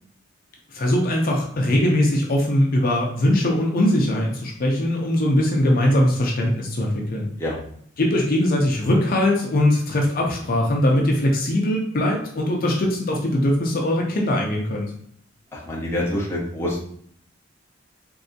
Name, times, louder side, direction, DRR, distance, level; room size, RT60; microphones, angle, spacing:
voice 1, 0.7-7.3 8.0-14.9, left 1 dB, 50° left, -1 dB, 0.5 m, -21 dB
voice 2, 15.5-16.8, left 1 dB, 15° left, -4 dB, 0.7 m, -26 dB
3.2 x 2.7 x 2.6 m, 0.67 s
head